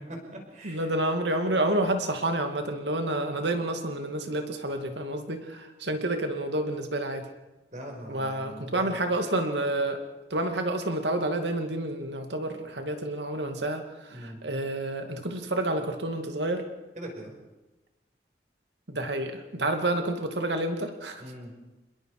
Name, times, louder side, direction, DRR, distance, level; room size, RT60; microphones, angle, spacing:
voice 1, 0.1-0.8 7.7-9.0 14.1-14.4 17.0-17.3 21.2-21.5, equal, 45° right, 2 dB, 5.3 m, -41 dB
voice 2, 0.6-7.3 8.1-10.0 10.3-16.6 18.9-21.2, right 1 dB, 85° right, 5 dB, 2.4 m, -29 dB
27.0 x 21.5 x 4.9 m, 1.1 s
head